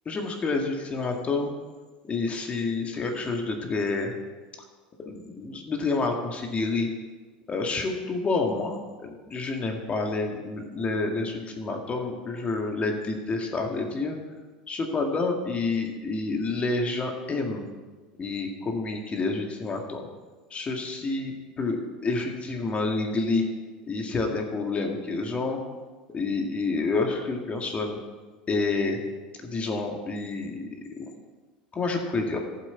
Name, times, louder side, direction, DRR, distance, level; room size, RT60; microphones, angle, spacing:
voice 1, 0.1-1.5 2.1-4.1 5.1-6.9 7.5-14.2 14.7-17.7 18.2-20.1 20.5-21.8 22.0-23.4 23.9-25.6 26.1-28.0 28.5-29.0 29.4-30.7 31.0-31.2 31.7-32.4, left 3 dB, 30° left, 3 dB, 1.8 m, -28 dB
14.0 x 7.7 x 4.5 m, 1.3 s
hypercardioid pair, 95°, 5 cm